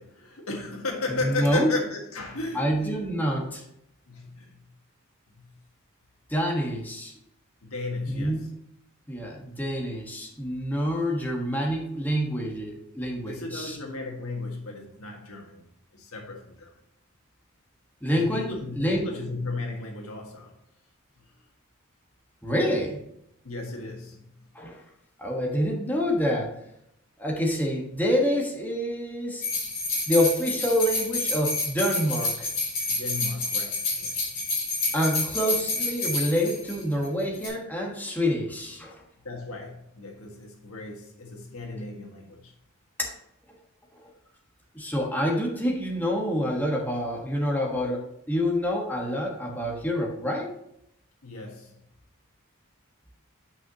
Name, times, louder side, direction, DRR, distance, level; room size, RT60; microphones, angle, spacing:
voice 1, 0.0-3.0 4.1-4.6 5.3-5.5 7.6-8.4 13.3-16.7 18.1-20.5 23.4-24.3 32.9-34.3 39.2-42.5 51.2-51.7, left 3 dB, 85° left, 1.6 m, -35 dB
voice 2, 1.1-1.7 2.5-3.6 6.3-7.1 8.1-8.4 9.1-13.8 18.0-18.5 18.7-19.1 22.4-23.0 24.5-24.8 25.2-26.5 27.2-29.4 30.1-32.5 34.9-39.0 43.0-43.1 44.7-50.5, equal, 10° left, 1.4 m, -27 dB
sound 1, 29.4-37.1 37.3-37.5, left 3 dB, 40° left, 3.0 m, -29 dB
9.0 x 5.7 x 2.9 m
head